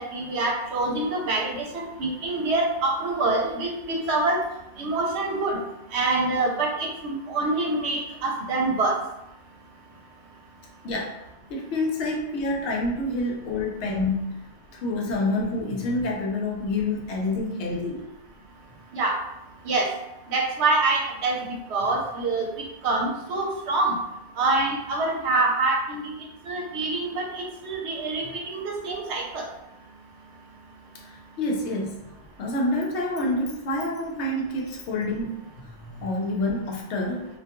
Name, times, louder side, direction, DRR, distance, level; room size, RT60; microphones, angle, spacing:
voice 1, 0.0-4.4 4.8-5.6 5.9-8.9 18.9-19.1 19.6-19.9 20.3-21.3 21.7-22.5 22.8-23.9 24.4-26.1 26.5-29.4, right 3 dB, 75° right, 0 dB, 0.8 m, -25 dB
voice 2, 11.5-14.4 14.8-18.0 31.0-32.0 32.4-37.3, left 2 dB, 75° left, -1 dB, 0.9 m, -28 dB
2.3 x 2.2 x 2.8 m, 0.87 s
omnidirectional pair, 1.2 m